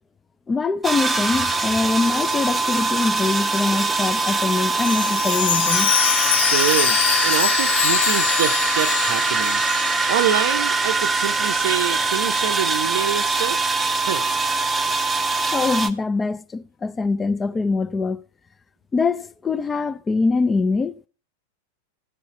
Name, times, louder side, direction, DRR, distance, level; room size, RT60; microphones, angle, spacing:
voice 1, 0.5-5.9 15.5-18.2 18.9-21.0, left 4 dB, 15° left, 0.5 m, -23 dB
sound 1, 0.8-15.9, right 3 dB, 10° right, 0.9 m, -22 dB
Chime, 4.8-10.7 11.0-11.1 11.7-11.8, left 10 dB, 55° left, 0.7 m, -23 dB
voice 2, 6.3-9.6 10.1-13.6 14.0-14.3, right 10 dB, 55° right, 0.6 m, -26 dB
14.0 x 5.6 x 6.9 m
figure-of-eight pair, 90°, 0 cm